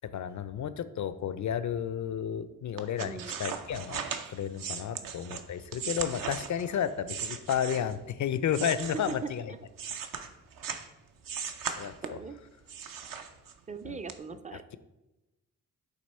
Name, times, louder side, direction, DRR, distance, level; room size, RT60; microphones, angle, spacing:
voice 1, 0.0-9.4 11.7-12.2 13.8-14.0, left 8 dB, 55° left, 14 dB, 0.4 m, -32 dB
sound 1, 2.8-8.0 8.5-10.9 11.2-12.3 12.7-13.7 14.1-14.2, right 7 dB, 60° right, 0.6 m, -38 dB
voice 2, 3.0-3.4 5.0-5.1 8.9-9.6 12.0-12.4 13.7-14.8, right 5 dB, 20° right, 10 dB, 0.4 m, -40 dB
7.8 x 2.9 x 4.2 m, 1.0 s
cardioid pair, 65°, 37 cm